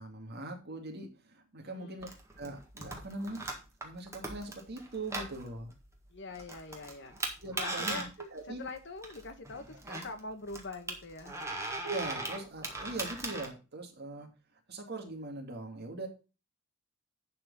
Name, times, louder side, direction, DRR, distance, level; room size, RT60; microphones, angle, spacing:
voice 1, 0.0-2.1 2.4-3.4 3.8-5.7 7.4-8.6 9.8-10.0 11.8-14.3 14.7-16.1, right 2 dB, 50° right, 2 dB, 2.2 m, -41 dB
voice 2, 1.6-2.1 6.1-7.2 7.5-8.1 8.5-11.4, left 3 dB, 55° left, 8 dB, 1.4 m, -44 dB
sound 1, 2.0-13.5, right 2 dB, 15° right, 1.7 m, -40 dB
11.0 x 4.4 x 5.4 m, 0.32 s
head